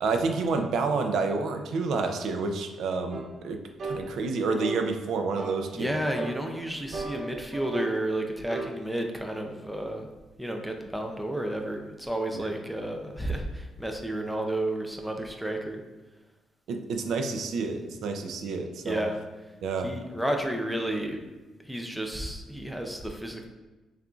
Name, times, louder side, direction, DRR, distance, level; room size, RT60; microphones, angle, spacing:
voice 1, 0.0-5.9 12.3-12.5 16.7-19.0 19.6-19.9, right 4 dB, 70° right, 5 dB, 0.4 m, -29 dB
sound 1, 3.1-3.3 3.8-4.0 4.6-4.8 5.4-5.6 6.1-6.4 6.9-8.0 8.5-8.7, right 3 dB, 50° right, 0.7 m, -35 dB
voice 2, 5.7-10.1 10.4-15.8 18.8-19.2 19.8-21.2 21.6-23.5, right 1 dB, ahead, 2 dB, 0.4 m, -31 dB
6.5 x 2.4 x 2.3 m, 1.2 s
cardioid pair, 150°, 0 cm